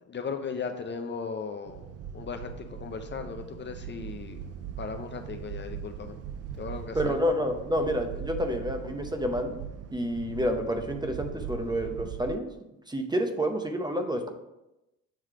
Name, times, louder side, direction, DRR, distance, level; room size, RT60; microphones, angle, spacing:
voice 1, 0.1-1.8 2.1-6.2 6.6-7.2, left 5 dB, 35° left, 6 dB, 0.6 m, -37 dB
sound 1, 1.7-12.4, right 8 dB, 55° right, 0.4 m, -40 dB
voice 2, 6.9-12.5 12.9-14.3, equal, 15° right, 5 dB, 0.7 m, -29 dB
7.5 x 3.2 x 4.8 m, 0.94 s
cardioid pair, 90°, 30 cm